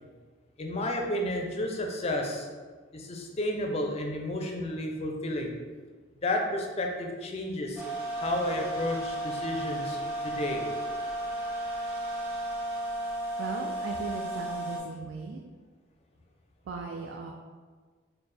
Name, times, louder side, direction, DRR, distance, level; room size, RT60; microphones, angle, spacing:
voice 1, 0.6-2.5 2.9-5.5 6.2-7.8 8.2-10.6, left 1 dB, 35° left, 2 dB, 0.4 m, -31 dB
sound 1, 7.8-14.8, right 1 dB, 10° right, 0.8 m, -34 dB
voice 2, 13.4-15.4 16.7-17.3, right 4 dB, 80° right, 1 dB, 0.3 m, -37 dB
4.2 x 2.1 x 3.3 m, 1.5 s
head